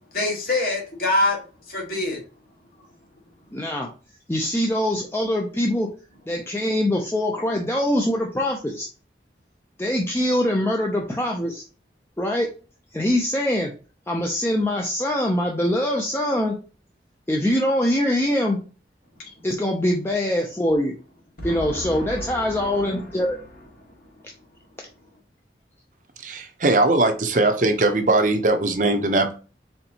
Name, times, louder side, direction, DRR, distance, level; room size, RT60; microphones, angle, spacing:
voice 1, 0.1-1.4 1.7-2.2 21.4-23.0, left 2 dB, 55° left, 1.5 m, -26 dB
voice 2, 3.5-3.9 4.3-5.9 6.3-8.9 9.8-11.6 12.2-12.5 12.9-13.7 14.1-16.6 17.3-18.6 19.4-20.9 21.4-23.4, left 1 dB, 15° left, 0.5 m, -23 dB
voice 3, 26.2-29.3, right 2 dB, 45° right, 0.7 m, -20 dB
4.3 x 3.8 x 2.8 m
head